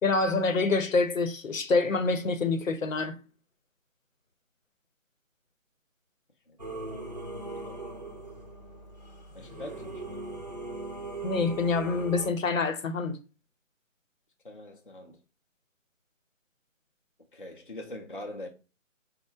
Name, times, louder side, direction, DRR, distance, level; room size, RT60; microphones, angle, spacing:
voice 1, 0.0-3.2 11.2-13.2, left 3 dB, 75° left, 0.8 m, -26 dB
Singing / Musical instrument, 6.6-12.3, right 2 dB, 35° right, 0.5 m, -40 dB
voice 2, 9.3-10.3 14.4-15.2 17.3-18.5, left 1 dB, 40° left, 0.4 m, -43 dB
4.6 x 2.1 x 4.2 m
figure-of-eight pair, 175°, 40 cm